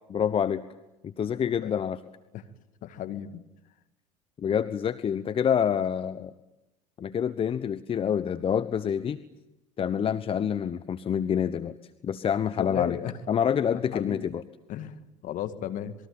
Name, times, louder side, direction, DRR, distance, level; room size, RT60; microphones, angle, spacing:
voice 1, 0.1-0.6 1.0-2.0 4.4-6.3 7.0-9.2 9.8-11.8 12.0-13.0 13.3-14.4, left 8 dB, 35° left, 13 dB, 1.1 m, -27 dB
voice 2, 2.8-3.4 12.6-13.1 13.9-14.3 14.7-15.9, left 11 dB, 50° left, 10 dB, 2.1 m, -34 dB
27.0 x 21.5 x 8.8 m, 0.96 s
hypercardioid pair, 75°, 17 cm